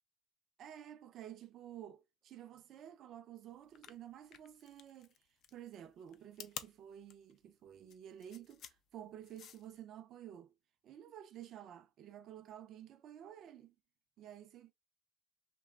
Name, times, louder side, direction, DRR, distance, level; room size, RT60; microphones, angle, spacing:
voice 1, 0.6-5.1 5.5-10.5 10.8-13.7 14.2-14.7, right 10 dB, 55° right, 0.4 m, -52 dB
sound 1, 3.6-9.8, left 9 dB, 55° left, 0.4 m, -52 dB
2.9 x 2.2 x 2.2 m
cardioid pair, 135°, 0 cm